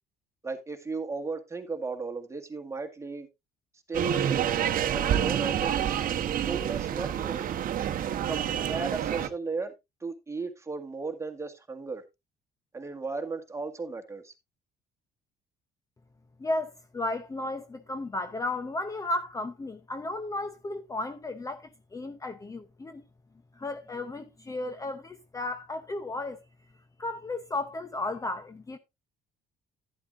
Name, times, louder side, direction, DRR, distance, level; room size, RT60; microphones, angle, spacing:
voice 1, 0.4-3.3 3.9-4.5 4.9-6.0 6.4-7.5 8.3-9.7 10.0-12.0 12.7-14.3, right 4 dB, 15° right, 1.7 m, -35 dB
sound 1, 3.9-9.3, right 10 dB, 55° right, 1.0 m, -28 dB
voice 2, 16.4-23.0 23.6-26.4 27.0-28.8, left 2 dB, 20° left, 0.7 m, -34 dB
11.0 x 10.0 x 2.5 m
cardioid pair, 110°, 17 cm